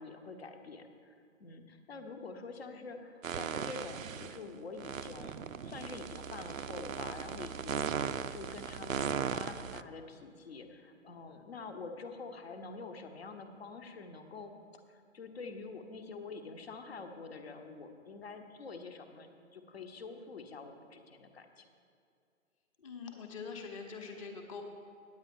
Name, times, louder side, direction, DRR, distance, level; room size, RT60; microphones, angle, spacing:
voice 1, 0.0-14.5 14.9-21.7, left 4 dB, 50° left, 6 dB, 1.1 m, -47 dB
sound 1, 3.2-4.4 4.8-9.8, right 7 dB, 75° right, 0.5 m, -38 dB
voice 2, 22.8-24.6, left 5 dB, 25° left, 3 dB, 1.0 m, -44 dB
9.5 x 9.1 x 5.3 m, 2.5 s
figure-of-eight pair, 130°, 40 cm